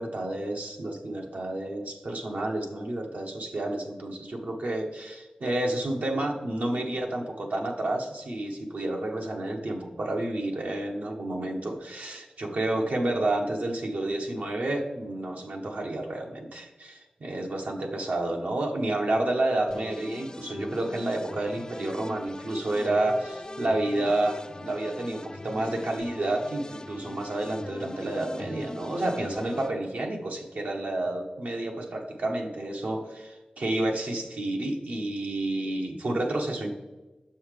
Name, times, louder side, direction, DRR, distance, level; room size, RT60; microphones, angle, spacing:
voice 1, 0.0-36.7, right 1 dB, 75° right, 1 dB, 0.9 m, -30 dB
sound 1, 19.7-29.7, left 2 dB, 25° left, 0.3 m, -41 dB
6.4 x 5.5 x 3.2 m, 1.1 s
wide cardioid pair, 65°, 3 cm